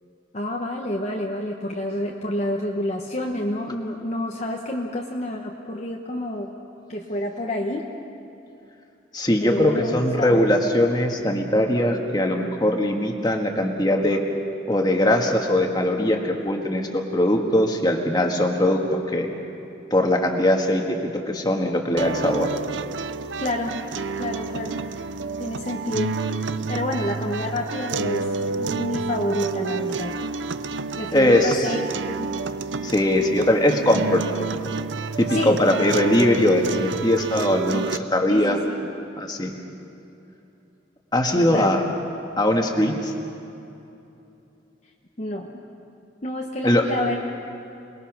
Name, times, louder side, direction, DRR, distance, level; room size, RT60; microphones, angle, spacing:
voice 1, 0.3-6.5 6.9-7.9 9.4-10.4 23.4-23.8 24.2-24.8 25.4-26.2 26.7-30.3 31.0-31.8 32.1-32.3 34.0-34.1 35.3-35.6 38.3-38.9 41.3-41.8 45.2-45.6 46.2-47.3, left 1 dB, 35° left, 0 dB, 1.1 m, -29 dB
voice 2, 9.1-14.2 14.7-19.3 19.9-22.5 31.1-31.7 32.8-34.4 35.2-38.6 39.2-39.5 41.1-41.8 42.4-43.1 46.6-46.8, left 1 dB, 20° left, 3 dB, 1.6 m, -21 dB
sound 1, 22.0-38.0, right 4 dB, 80° right, 0.6 m, -29 dB
27.5 x 21.0 x 6.1 m, 2.9 s
head